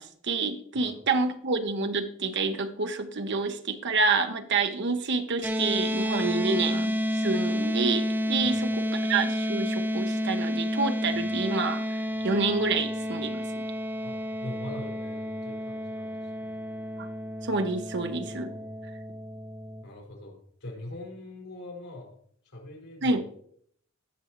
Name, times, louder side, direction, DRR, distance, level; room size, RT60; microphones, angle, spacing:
voice 1, 0.0-13.6 17.0-17.1 17.4-18.5 23.0-23.2, right 3 dB, 55° right, 7 dB, 0.9 m, -28 dB
sound 1, 5.4-19.8, equal, 10° right, 0.7 m, -30 dB
voice 2, 14.0-16.6 18.2-18.9 19.8-22.1 22.4-23.2, left 1 dB, 80° left, -1 dB, 4.9 m, -43 dB
18.5 x 6.2 x 3.1 m, 0.64 s
head